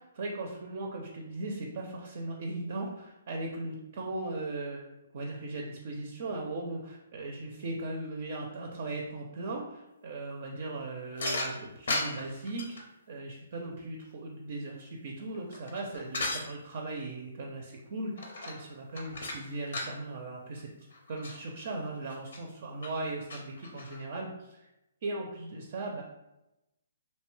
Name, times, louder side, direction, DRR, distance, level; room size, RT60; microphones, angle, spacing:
voice 1, 0.0-4.9 5.1-20.7 21.1-24.7 25.0-26.0, right 2 dB, 55° right, 1 dB, 0.4 m, -38 dB
sound 1, 11.2-12.8 15.2-16.5 18.2-18.7 19.0-20.0 20.6-20.7 20.9-21.4 22.1-22.4 22.8-22.9 23.3-24.0, left 2 dB, 70° left, 0.6 m, -36 dB
2.7 x 2.2 x 3.1 m, 0.94 s
hypercardioid pair, 145°, 0 cm